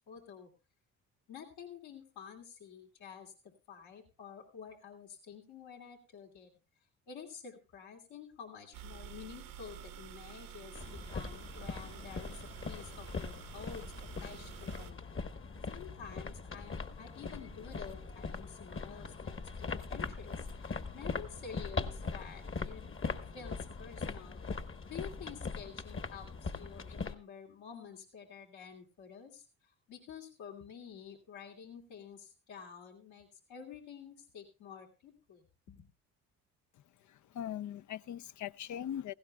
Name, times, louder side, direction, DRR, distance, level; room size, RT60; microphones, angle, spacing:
voice 1, 0.1-0.5 1.3-3.3 3.7-6.5 7.1-12.4 12.7-15.0 15.7-24.4 24.9-35.9, left 7 dB, 75° left, 2.9 m, -50 dB
sound 1, 8.7-14.9, right 9 dB, 85° right, 1.5 m, -49 dB
sound 2, 10.7-27.1, left 4 dB, 30° left, 1.3 m, -41 dB
voice 2, 37.1-39.1, left 10 dB, 50° left, 0.6 m, -40 dB
17.5 x 16.0 x 2.3 m
hypercardioid pair, 55°, 39 cm